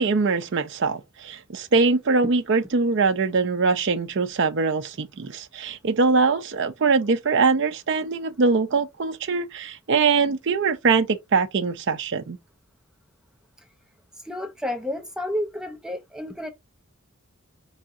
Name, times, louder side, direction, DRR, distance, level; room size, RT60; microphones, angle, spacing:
voice 1, 0.0-12.4, right 4 dB, 55° right, 0.5 m, -22 dB
voice 2, 14.2-16.5, left 1 dB, 5° right, 0.6 m, -30 dB
4.8 x 2.6 x 3.6 m
head